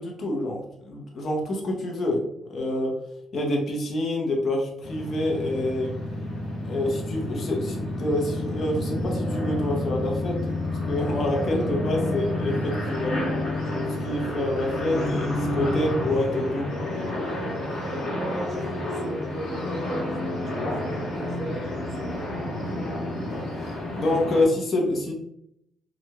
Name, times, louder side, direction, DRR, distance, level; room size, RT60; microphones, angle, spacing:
voice 1, 0.0-2.2 2.5-2.9 3.3-6.0 6.6-10.4 10.9-13.2 13.9-16.7 23.2-23.4 23.9-25.1, left 1 dB, 50° left, 0 dB, 0.8 m, -27 dB
sound 1, 4.8-24.5, left 1 dB, 75° left, 1.2 m, -29 dB
voice 2, 17.6-22.4, right 1 dB, 50° right, 1 dB, 0.8 m, -37 dB
2.9 x 2.5 x 2.2 m, 0.77 s
cardioid pair, 90°, 0 cm